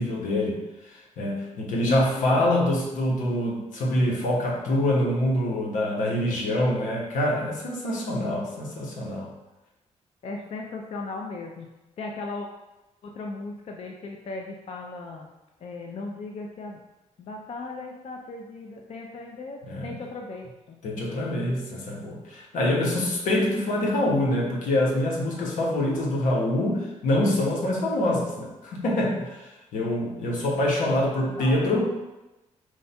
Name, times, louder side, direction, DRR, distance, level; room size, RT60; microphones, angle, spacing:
voice 1, 0.0-9.3 19.7-19.9 20.8-31.9, left 1 dB, 90° left, -1 dB, 1.0 m, -25 dB
voice 2, 1.7-2.5 10.2-11.7 12.0-12.5 13.0-15.3 15.6-16.8 17.2-21.2 31.3-31.7, left 3 dB, 55° left, 1 dB, 0.5 m, -37 dB
4.6 x 2.2 x 4.2 m, 1.0 s
cardioid pair, 105°, 13 cm